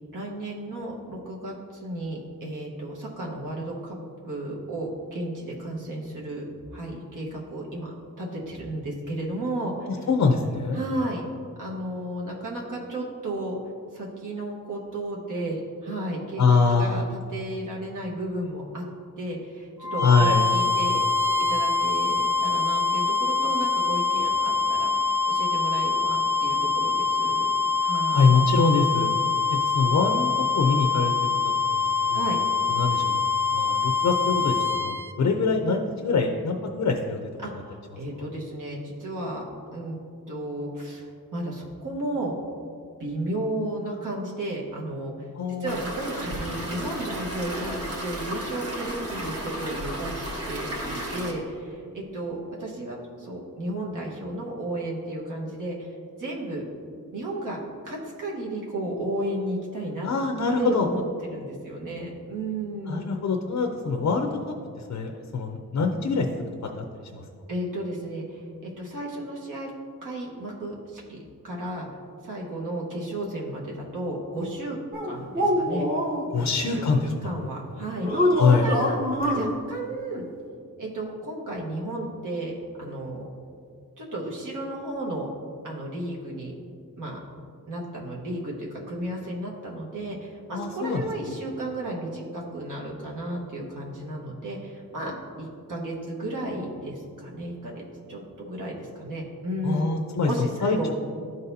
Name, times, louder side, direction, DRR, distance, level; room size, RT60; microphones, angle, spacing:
voice 1, 0.1-3.9 4.3-6.4 6.7-9.9 10.7-11.2 11.6-13.6 13.9-16.4 16.7-18.8 19.2-21.0 21.5-27.5 27.8-28.3 32.1-32.4 37.4-39.4 39.7-40.0 40.3-41.1 41.3-42.3 43.0-45.1 45.5-56.6 57.1-60.1 60.6-63.1 67.5-69.7 70.0-71.9 72.2-74.8 75.0-75.9 76.4-76.9 77.2-78.1 78.5-79.0 79.3-80.2 80.8-83.3 84.0-85.3 85.6-86.5 87.0-87.2 87.7-95.1 95.4-97.8 98.1-100.9, right 1 dB, 60° right, -3 dB, 1.3 m, -33 dB
voice 2, 9.9-10.8 16.4-17.0 20.0-20.5 28.1-29.1 29.6-30.3 30.5-31.1 31.7-32.2 32.7-33.2 33.5-34.5 34.8-37.2 45.4-45.9 60.0-60.9 62.9-64.5 64.9-67.2 76.3-77.4 78.4-78.7 90.5-91.1 99.6-100.9, left 4 dB, 55° left, 3 dB, 0.6 m, -24 dB
sound 1, 19.8-35.1, left 4 dB, 10° right, 0.3 m, -24 dB
sound 2, 45.7-51.3, right 1 dB, 45° right, 1.4 m, -33 dB
sound 3, 74.9-76.2 78.0-79.5, equal, 25° right, 1.1 m, -24 dB
12.0 x 4.0 x 2.7 m, 2.3 s
wide cardioid pair, 105°, 35 cm